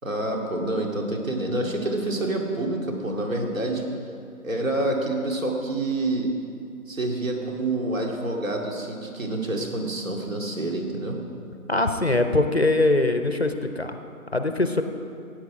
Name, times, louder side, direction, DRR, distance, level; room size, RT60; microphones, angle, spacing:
voice 1, 0.0-3.8 4.4-6.3 6.9-11.2, right 2 dB, 60° right, 1 dB, 2.4 m, -27 dB
voice 2, 11.7-14.0 14.3-14.8, left 2 dB, 45° left, 7 dB, 0.7 m, -22 dB
16.0 x 9.2 x 4.9 m, 2.4 s
figure-of-eight pair, 180°, 45 cm